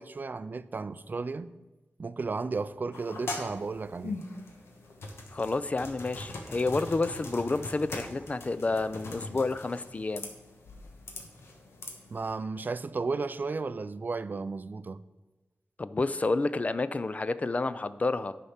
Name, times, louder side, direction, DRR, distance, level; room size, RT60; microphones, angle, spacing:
voice 1, 0.0-1.5 2.0-4.2 12.1-15.0, right 4 dB, 50° right, 0.4 m, -34 dB
A Day at the Office, 2.9-12.4, left 2 dB, 85° left, 1.2 m, -42 dB
voice 2, 5.3-10.3 15.8-18.4, left 3 dB, 35° left, 0.4 m, -29 dB
9.8 x 4.2 x 5.8 m
wide cardioid pair, 70°, 4 cm